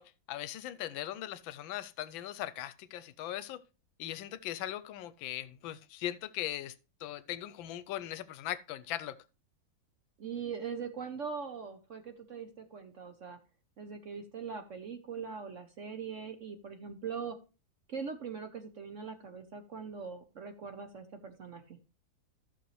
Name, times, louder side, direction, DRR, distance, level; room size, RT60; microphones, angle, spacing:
voice 1, 0.0-3.6 4.0-6.8 7.0-9.2, left 13 dB, 85° left, 1.4 m, -39 dB
voice 2, 10.2-13.4 13.8-17.4 17.9-21.8, right 6 dB, 55° right, 0.9 m, -41 dB
14.0 x 6.6 x 3.2 m
omnidirectional pair, 2.1 m